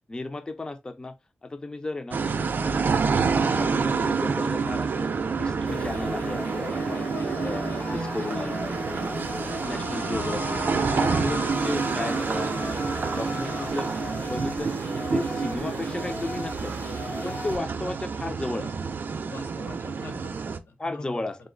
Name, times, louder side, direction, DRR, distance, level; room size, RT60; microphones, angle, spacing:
voice 1, 0.1-1.2 1.4-2.2 2.5-3.2 3.5-5.1 5.4-7.1 7.4-8.6 8.9-9.2 9.6-10.6 10.9-13.9 14.3-14.7 15.1-16.7 17.2-18.7 20.8-21.4, left 2 dB, 20° left, 0.5 m, -34 dB
sound 1, 2.1-20.6, right 5 dB, 60° right, 0.5 m, -28 dB
sound 2, 5.7-17.6, left 3 dB, 65° left, 1.5 m, -37 dB
voice 2, 10.6-11.2 19.3-21.3, left 2 dB, 90° left, 1.0 m, -42 dB
3.8 x 2.5 x 3.7 m
wide cardioid pair, 145°, 4 cm